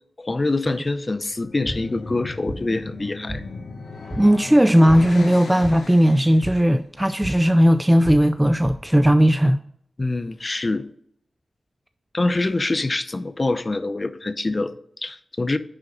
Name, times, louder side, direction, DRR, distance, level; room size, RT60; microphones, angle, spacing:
voice 1, 0.2-3.4 10.0-10.9 12.1-15.6, left 2 dB, 35° left, 0.6 m, -25 dB
sound 1, 1.3-6.6, left 3 dB, 75° left, 1.0 m, -37 dB
sound 2, 1.3-9.1, equal, 5° left, 2.4 m, -37 dB
voice 2, 4.2-9.6, equal, 10° right, 0.4 m, -17 dB
10.0 x 3.9 x 5.1 m
cardioid pair, 65°, 0 cm